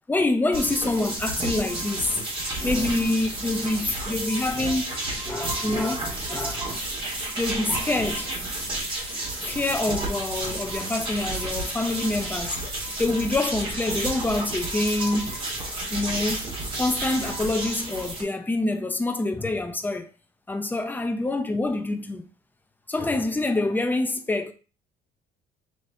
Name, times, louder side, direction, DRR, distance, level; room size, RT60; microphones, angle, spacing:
voice 1, 0.1-2.1 2.6-6.8 7.4-8.3 9.4-12.6 13.0-15.4 15.9-20.1 20.5-22.3 22.9-24.5, left 2 dB, 10° left, 0.6 m, -26 dB
sound 1, 0.5-18.2, right 2 dB, 30° right, 1.5 m, -31 dB
5.6 x 3.1 x 2.7 m
cardioid pair, 110°, 17 cm